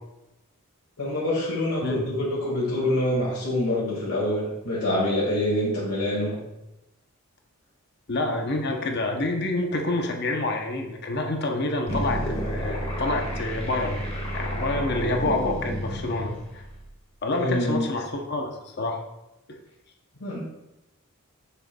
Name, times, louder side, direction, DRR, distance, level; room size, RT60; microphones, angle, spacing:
voice 1, 1.0-6.4 17.4-17.8 20.2-20.4, left 1 dB, 90° left, -6 dB, 1.8 m, -26 dB
voice 2, 8.1-14.0 14.3-16.6 17.2-19.0 19.5-19.6, left 2 dB, 50° left, 2 dB, 0.8 m, -28 dB
sound 1, 11.9-16.9, equal, 25° left, 1.5 m, -31 dB
7.7 x 6.6 x 2.3 m, 0.92 s
head